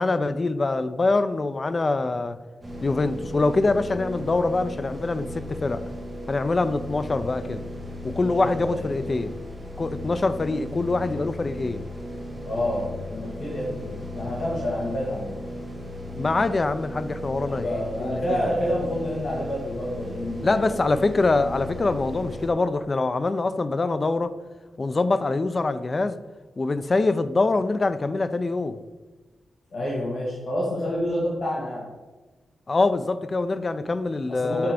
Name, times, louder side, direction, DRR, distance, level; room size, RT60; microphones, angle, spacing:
voice 1, 0.0-2.4 2.8-5.8 6.3-7.6 8.0-9.3 9.8-11.8 16.1-18.6 20.4-24.3 24.8-26.2 26.6-28.8 32.7-34.7, left 3 dB, 30° left, 12 dB, 0.3 m, -24 dB
sound 1, 2.6-22.5, left 1 dB, 15° right, 1.4 m, -36 dB
voice 2, 8.2-8.9 12.4-15.5 17.5-20.6 29.7-31.8 34.3-34.7, left 1 dB, 55° left, -4 dB, 1.4 m, -28 dB
5.9 x 4.5 x 4.9 m, 1.2 s
wide cardioid pair, 150°, 0 cm